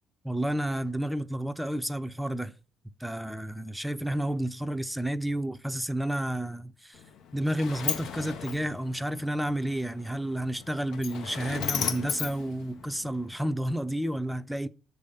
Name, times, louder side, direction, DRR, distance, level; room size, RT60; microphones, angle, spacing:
voice 1, 0.2-2.5 3.0-7.0 7.3-14.7, right 1 dB, ahead, 0.5 m, -31 dB
Sliding door, 6.9-13.3, left 8 dB, 75° left, 0.6 m, -36 dB
6.6 x 3.4 x 5.5 m
cardioid pair, 90°, 0 cm